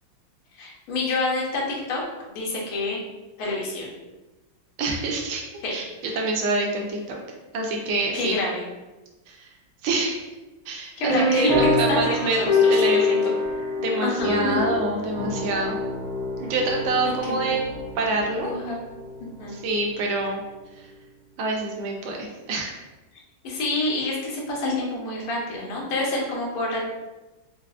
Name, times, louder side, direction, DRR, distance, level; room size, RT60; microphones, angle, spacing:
voice 1, 0.6-2.0 2.3-3.0 3.4-3.9 5.6-5.8 8.1-8.6 11.0-13.2 14.0-14.6 17.3-17.6 18.4-18.8 19.4-19.6 23.4-26.8, left 2 dB, 80° left, -3 dB, 1.6 m, -27 dB
voice 2, 4.8-5.4 5.7-5.9 6.1-7.2 7.5-8.4 9.3-9.5 9.8-10.2 10.7-13.2 13.8-15.8 16.4-17.6 18.0-18.5 19.5-20.4 21.4-22.7, right 2 dB, 75° right, 0 dB, 1.3 m, -26 dB
sound 1, 11.1-19.2, left 2 dB, 60° right, 0.9 m, -25 dB
4.6 x 2.0 x 2.3 m, 1.1 s
omnidirectional pair, 2.3 m